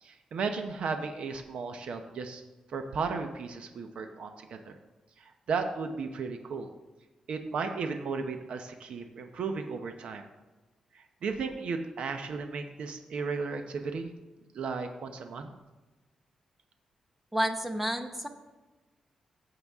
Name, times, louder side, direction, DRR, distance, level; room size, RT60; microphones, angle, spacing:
voice 1, 0.0-2.4 2.7-4.8 5.2-6.7 7.3-10.2 10.9-14.1 14.5-15.5, right 4 dB, 60° right, 6 dB, 0.8 m, -35 dB
voice 2, 17.3-18.3, equal, 10° right, 6 dB, 0.9 m, -30 dB
15.0 x 7.8 x 3.6 m, 1.2 s
wide cardioid pair, 165°, 2 cm